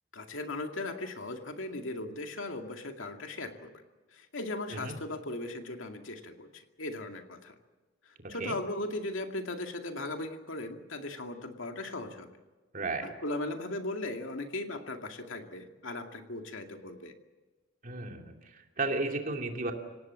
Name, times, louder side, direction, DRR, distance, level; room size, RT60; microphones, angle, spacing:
voice 1, 0.1-3.7 4.1-7.5 8.1-12.3 13.0-17.1, left 2 dB, 80° left, 4 dB, 2.3 m, -38 dB
voice 2, 8.2-8.6 12.7-13.1 17.8-19.7, right 2 dB, 45° right, 3 dB, 2.7 m, -34 dB
25.5 x 18.0 x 7.6 m, 1.2 s
head